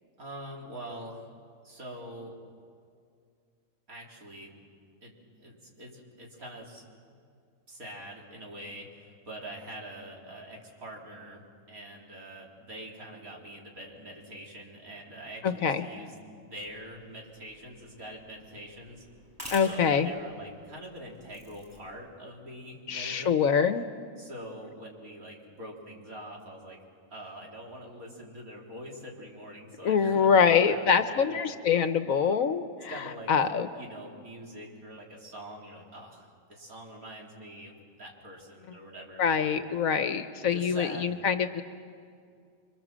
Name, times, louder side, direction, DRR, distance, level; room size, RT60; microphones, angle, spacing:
voice 1, 0.2-1.3 1.6-2.3 3.9-4.5 5.0-6.9 7.7-19.0 19.6-23.6 24.2-26.8 27.1-31.4 32.9-33.3 33.7-39.3 40.4-41.0, right 1 dB, 85° right, -2 dB, 4.0 m, -44 dB
voice 2, 15.4-15.8 19.5-20.1 22.9-23.8 29.8-33.7 39.2-41.6, left 6 dB, 75° left, 10 dB, 1.4 m, -25 dB
sound 1, 16.6-22.0, equal, 10° right, 7.5 m, -49 dB
27.0 x 24.5 x 7.5 m, 2.3 s
omnidirectional pair, 1.5 m